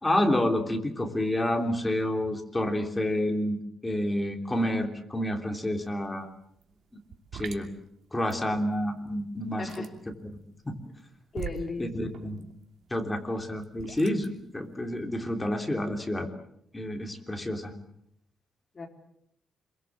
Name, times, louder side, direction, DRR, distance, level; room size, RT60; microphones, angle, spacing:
voice 1, 0.0-3.6 3.8-6.3 7.3-7.7 8.1-9.7 10.6-10.7 11.8-12.5 12.9-16.3 16.7-17.7, left 1 dB, 15° left, 4 dB, 3.3 m, -29 dB
sound 1, 5.8-6.0 6.3-15.0, right 8 dB, 85° right, 2.6 m, -44 dB
voice 2, 9.6-9.9 11.3-12.1 18.7-18.9, left 3 dB, 30° left, 2 dB, 4.2 m, -36 dB
27.0 x 23.0 x 7.4 m, 0.73 s
wide cardioid pair, 145°, 0 cm